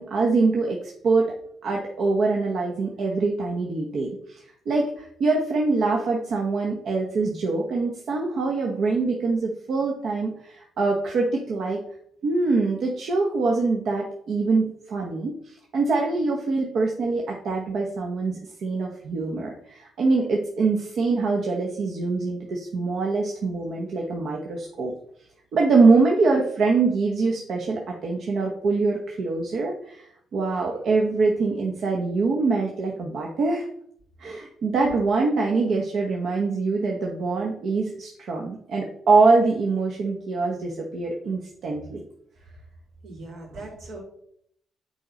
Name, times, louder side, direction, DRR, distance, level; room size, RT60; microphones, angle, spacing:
voice 1, 0.0-1.3 1.6-11.8 12.2-24.9 25.5-33.7 34.2-42.0, right 3 dB, 65° right, -1 dB, 1.1 m, -24 dB
voice 2, 43.0-44.0, right 2 dB, 85° right, -3 dB, 3.4 m, -40 dB
7.6 x 4.4 x 5.2 m, 0.69 s
cardioid pair, 90°, 0 cm